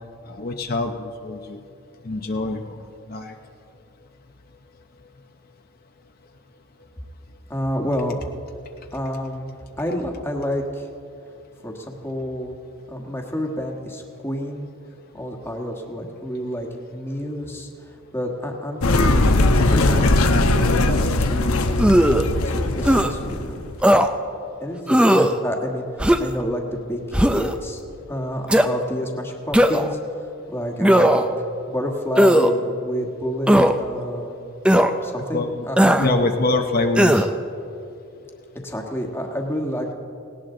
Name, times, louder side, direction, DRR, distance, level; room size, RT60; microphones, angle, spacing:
voice 1, 0.3-1.6 2.0-3.3 35.3-35.7 36.0-37.3, left 2 dB, 45° left, 4 dB, 0.8 m, -25 dB
voice 2, 7.5-8.2 8.9-9.5 9.8-10.9 11.6-12.5 12.9-14.7 15.1-19.4 19.7-20.8 21.2-22.0 22.4-23.7 24.6-27.8 28.1-31.3 31.7-34.4 35.0-36.3 38.6-39.9, equal, 10° left, 1 dB, 1.4 m, -29 dB
sound 1, 18.8-23.7, left 2 dB, 80° left, 1.0 m, -19 dB
sound 2, 21.8-22.3 22.8-23.1 23.8-24.1 24.9-25.3 26.0-26.4 27.1-27.5 28.5-28.7 29.5-29.9 30.8-31.3 32.2-32.5 33.5-33.7 34.7-34.9 35.8-36.1 37.0-37.3, equal, 5° right, 0.5 m, -16 dB
18.5 x 18.0 x 3.8 m, 2.6 s
head